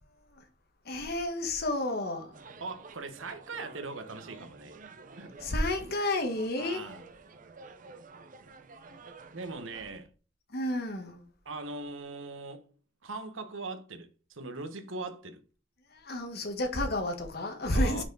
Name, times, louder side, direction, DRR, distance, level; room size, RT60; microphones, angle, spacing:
voice 1, 0.8-2.4 5.4-6.8 10.5-11.3 15.9-18.0, left 1 dB, 50° left, 1.4 m, -31 dB
sound 1, 2.3-9.9, right 3 dB, 40° right, 0.7 m, -51 dB
voice 2, 2.6-4.8 5.2-5.5 6.6-7.0 9.3-10.1 11.4-12.8 13.0-15.4 17.7-18.0, right 3 dB, 80° right, 1.2 m, -40 dB
6.0 x 4.6 x 4.7 m
head